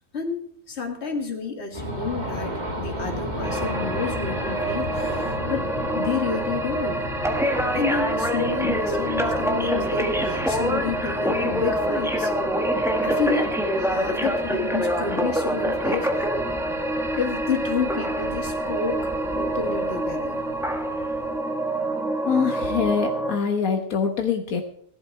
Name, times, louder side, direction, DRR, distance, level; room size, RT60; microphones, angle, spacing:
voice 1, 0.1-2.5 2.8-5.7 5.9-7.0 7.7-12.3 13.0-16.3 17.1-20.4, left 5 dB, 50° left, 2 dB, 2.2 m, -30 dB
sound 1, 1.7-21.4, equal, 30° right, 1.9 m, -35 dB
sound 2, 3.4-23.4, right 1 dB, ahead, 1.4 m, -26 dB
voice 2, 22.2-24.6, left 6 dB, 85° left, 4 dB, 1.6 m, -24 dB
16.5 x 11.5 x 4.6 m, 0.64 s
omnidirectional pair, 1.4 m